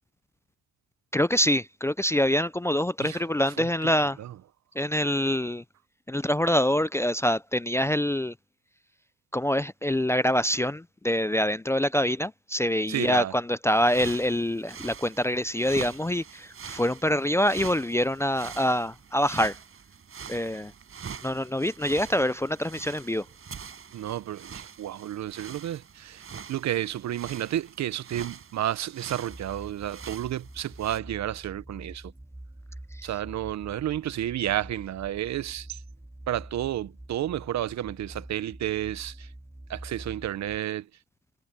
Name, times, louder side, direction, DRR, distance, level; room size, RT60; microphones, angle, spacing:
voice 1, 1.1-4.2 4.8-5.6 6.1-8.3 9.3-19.6 20.3-20.7 21.2-23.2 32.9-33.1, equal, 10° left, 0.4 m, -25 dB
voice 2, 3.6-3.9 4.2-4.3 12.9-13.3 23.9-32.1 33.0-35.8 36.3-39.3 39.7-40.9, right 12 dB, 65° right, 0.9 m, -31 dB
sound 1, 13.7-31.0, right 6 dB, 45° right, 6.6 m, -44 dB
sound 2, 29.3-40.6, right 1 dB, 10° right, 3.2 m, -45 dB
cardioid pair, 90°, 30 cm